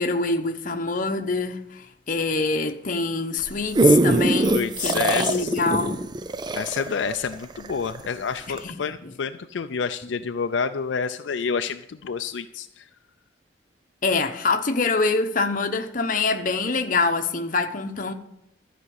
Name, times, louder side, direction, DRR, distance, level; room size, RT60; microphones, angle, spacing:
voice 1, 0.0-6.1 8.5-9.1 14.0-18.1, left 3 dB, 45° left, 0.9 m, -25 dB
sound 1, 3.4-8.1 8.6-8.7, right 2 dB, 25° right, 0.4 m, -22 dB
voice 2, 4.4-5.6 6.6-12.8, left 5 dB, 80° left, 0.4 m, -28 dB
12.5 x 5.1 x 8.1 m
head